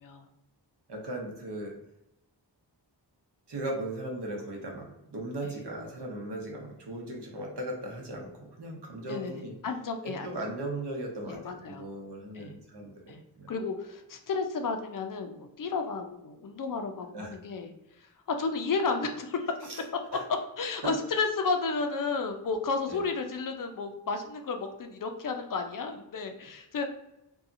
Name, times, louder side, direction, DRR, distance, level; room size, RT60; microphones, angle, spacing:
voice 1, 0.9-1.7 3.5-9.5 10.0-13.5 17.1-17.3 19.6-19.8 20.1-20.2 20.8-20.9 22.9-23.0, right 1 dB, 65° right, 0 dB, 0.9 m, -37 dB
voice 2, 9.1-10.3 11.3-11.9 12.3-12.5 13.1-13.2 13.5-17.7 18.3-19.5 20.3-26.8, left 4 dB, 50° left, 6 dB, 0.5 m, -32 dB
2.7 x 2.3 x 2.5 m, 0.87 s
cardioid pair, 55°, 43 cm